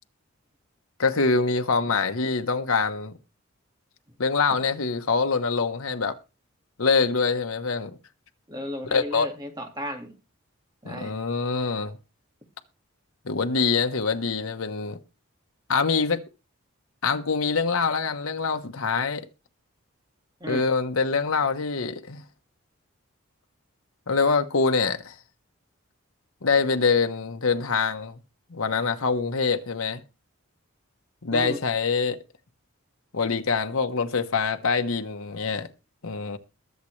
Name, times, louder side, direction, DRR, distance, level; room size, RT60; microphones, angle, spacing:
voice 1, 1.0-3.1 4.2-6.2 6.8-8.0 8.9-9.3 10.8-12.0 13.2-15.0 15.7-16.2 17.0-19.3 20.5-22.2 24.1-25.1 26.4-28.2 28.5-30.0 31.2-32.2 33.1-35.7 36.0-36.4, left 4 dB, 80° left, 1.1 m, -24 dB
voice 2, 8.5-10.1 10.8-11.1 20.4-20.6 31.3-31.6, left 1 dB, 20° right, 2.0 m, -34 dB
22.0 x 7.4 x 3.3 m
head